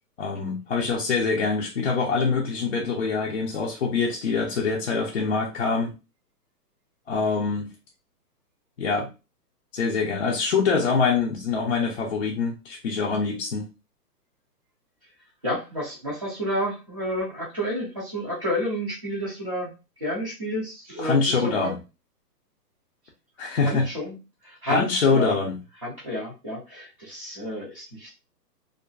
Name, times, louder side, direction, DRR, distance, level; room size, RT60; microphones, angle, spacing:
voice 1, 0.2-5.9 7.1-7.7 8.8-9.1 9.7-13.6 21.0-21.8 23.4-23.9 24.7-25.6, left 4 dB, 45° left, -2 dB, 0.5 m, -24 dB
voice 2, 15.4-19.7 20.0-21.7 23.7-24.2 24.4-25.4 25.8-28.1, equal, 25° right, -10 dB, 0.4 m, -30 dB
2.4 x 2.4 x 2.2 m, 0.29 s
hypercardioid pair, 155°, 48 cm